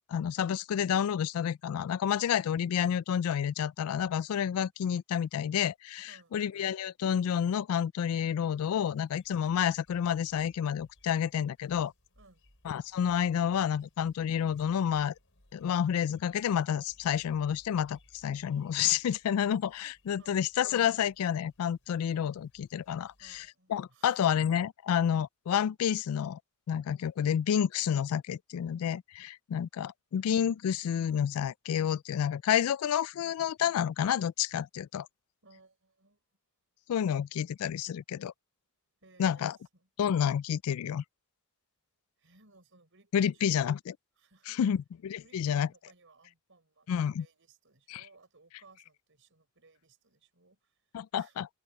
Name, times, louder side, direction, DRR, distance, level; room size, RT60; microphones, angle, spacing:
voice 1, 0.1-11.9 12.7-15.1 15.5-26.4 26.7-35.1 36.9-38.3 39.2-39.5 40.0-41.0 43.1-43.8 44.5-45.7 46.9-47.3 47.9-48.0 50.9-51.5, left 8 dB, 80° left, 0.3 m, -29 dB
sound 1, 8.5-23.5, left 1 dB, 65° left, 6.3 m, -65 dB
voice 2, 20.2-20.5 23.2-24.3 35.4-36.2 39.0-39.9 42.2-43.8 44.2-44.6 45.2-51.4, right 3 dB, 60° right, 6.5 m, -62 dB
head